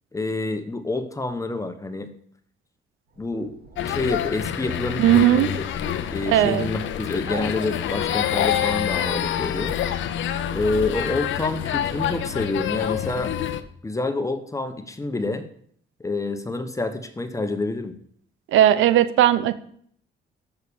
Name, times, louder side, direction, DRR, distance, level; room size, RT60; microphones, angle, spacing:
voice 1, 0.1-2.1 3.2-3.5 3.8-5.6 6.1-9.8 10.5-13.3 13.8-15.5 16.0-17.9, left 2 dB, 15° left, 9 dB, 1.1 m, -28 dB
sound 1, 3.1-9.4, right 4 dB, 50° right, 1.5 m, -42 dB
sound 2, 3.8-13.6, left 10 dB, 75° left, 0.7 m, -27 dB
voice 2, 5.0-5.5 6.3-6.7 18.5-19.6, right 12 dB, 85° right, 14 dB, 0.7 m, -17 dB
6.5 x 5.6 x 7.0 m, 0.62 s
cardioid pair, 90°, 20 cm